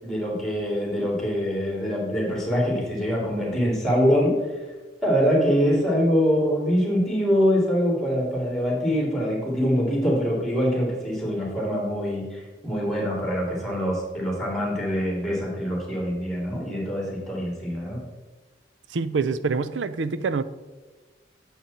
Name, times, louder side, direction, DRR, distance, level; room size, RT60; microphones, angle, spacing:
voice 1, 0.0-4.3 5.0-18.0, equal, 5° left, -3 dB, 3.0 m, -24 dB
voice 2, 18.9-20.4, right 4 dB, 75° right, 14 dB, 0.5 m, -26 dB
9.0 x 7.5 x 4.3 m, 1.3 s
head